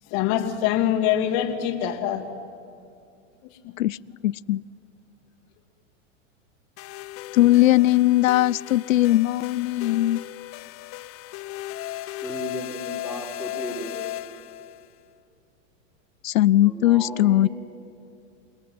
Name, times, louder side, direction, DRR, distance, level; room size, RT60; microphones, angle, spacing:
voice 1, 0.1-2.3 3.6-3.8, left 10 dB, 55° left, 6 dB, 2.8 m, -24 dB
voice 2, 4.2-4.6 7.3-10.3 16.2-17.5, left 15 dB, 90° left, 24 dB, 0.6 m, -19 dB
sound 1, 6.8-14.9, left 14 dB, 35° left, 0.8 m, -36 dB
voice 3, 12.2-13.9 16.6-17.5, equal, 5° right, 0 dB, 4.5 m, -35 dB
29.0 x 19.0 x 9.6 m, 2.4 s
hypercardioid pair, 120°, 39 cm